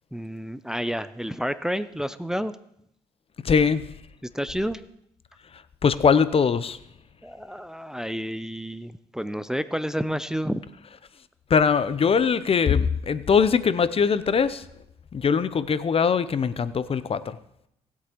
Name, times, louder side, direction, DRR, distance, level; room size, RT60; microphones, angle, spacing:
voice 1, 0.1-2.5 4.2-4.8 7.2-10.6, equal, 5° right, 13 dB, 0.6 m, -30 dB
voice 2, 3.4-3.9 5.5-6.8 11.5-14.7 15.1-17.4, left 6 dB, 40° left, 14 dB, 0.7 m, -22 dB
19.0 x 8.3 x 3.1 m, 0.76 s
hypercardioid pair, 55°, 15 cm